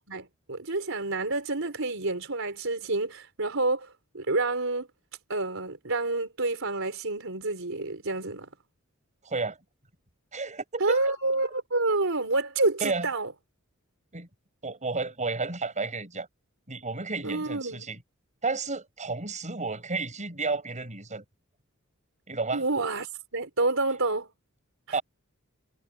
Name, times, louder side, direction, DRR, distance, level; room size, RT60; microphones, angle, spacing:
voice 1, 0.1-4.9 5.3-8.5 10.8-13.3 17.2-17.9 22.5-24.3, right 2 dB, 65° right, 4.9 m, -28 dB
voice 2, 9.2-9.6 10.3-11.0 12.8-13.1 14.1-14.3 14.6-16.3 16.7-18.0 18.4-21.2 22.3-22.6 24.9-25.0, right 3 dB, 35° right, 7.1 m, -32 dB
head